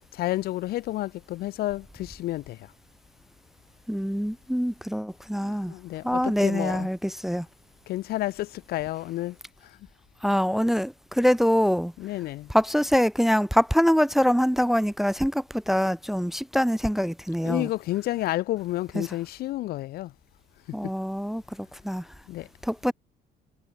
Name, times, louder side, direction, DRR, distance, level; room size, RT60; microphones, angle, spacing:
voice 1, 0.1-2.7 5.4-6.9 7.9-9.4 9.6-9.8 12.0-12.5 17.4-20.1 22.3-22.5, left 16 dB, 65° left, 0.5 m, -30 dB
voice 2, 3.9-5.7 6.0-7.5 10.2-11.9 12.5-17.7 18.9-19.0 20.7-22.1 22.6-22.9, equal, ahead, 0.5 m, -24 dB
cardioid pair, 110°, 17 cm